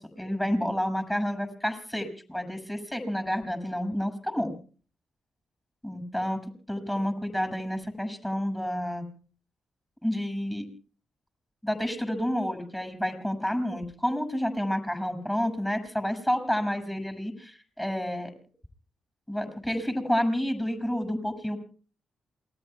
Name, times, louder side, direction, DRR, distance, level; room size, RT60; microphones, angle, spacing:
voice 1, 0.0-4.5 5.8-6.4 6.7-9.0 10.0-10.6 11.6-18.3 19.3-21.6, equal, 10° left, 8 dB, 6.8 m, -29 dB
28.0 x 21.0 x 2.3 m, 0.41 s
hypercardioid pair, 45°, 0 cm